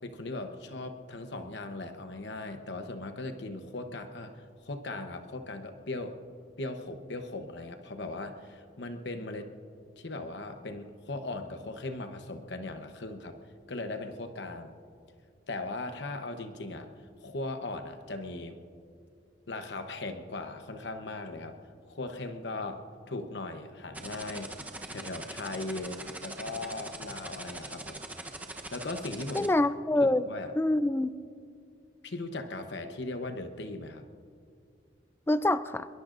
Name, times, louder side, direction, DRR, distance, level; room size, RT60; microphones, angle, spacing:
voice 1, 0.0-6.2 6.6-9.5 10.0-13.4 13.7-14.7 15.5-16.9 17.2-18.6 19.5-21.6 21.9-24.5 24.9-28.0 28.7-29.5 30.0-30.5 32.0-34.0, left 2 dB, 70° left, 7 dB, 1.0 m, -38 dB
sound 1, 23.9-29.5, right 2 dB, 10° right, 0.9 m, -41 dB
voice 2, 29.3-30.2 30.6-31.1 35.3-35.9, left 1 dB, 15° left, 13 dB, 0.4 m, -25 dB
24.0 x 22.0 x 2.6 m, 2.3 s
head